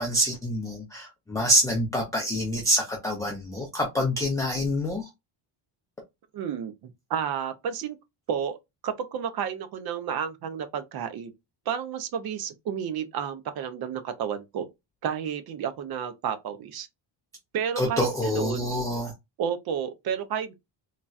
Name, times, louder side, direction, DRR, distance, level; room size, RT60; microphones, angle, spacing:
voice 1, 0.0-5.1 17.8-19.1, equal, 5° left, 0.4 m, -26 dB
voice 2, 6.3-8.0 8.3-8.6 8.8-11.3 11.7-14.7 15.0-16.9 17.5-18.7 19.4-20.5, right 8 dB, 50° right, 0.6 m, -31 dB
4.0 x 2.2 x 2.3 m
cardioid pair, 175°, 47 cm